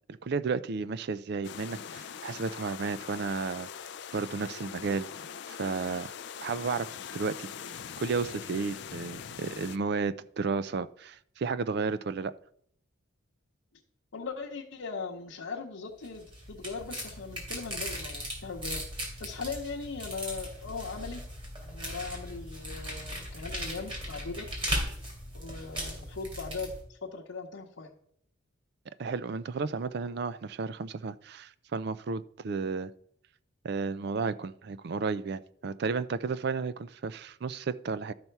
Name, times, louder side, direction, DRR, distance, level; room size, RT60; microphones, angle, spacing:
voice 1, 0.2-3.7 4.1-5.1 5.5-6.1 6.4-7.5 8.0-12.3 29.0-32.9 33.6-38.1, right 4 dB, 50° right, 15 dB, 0.4 m, -33 dB
sound 1, 1.4-9.8, left 8 dB, 55° left, 0.4 m, -42 dB
voice 2, 14.1-18.8 19.2-21.2 21.6-24.5 25.3-28.0, left 4 dB, 75° left, -3 dB, 0.9 m, -39 dB
sound 2, 16.0-26.8, equal, 25° right, 2.8 m, -38 dB
12.0 x 5.5 x 4.6 m, 0.68 s
head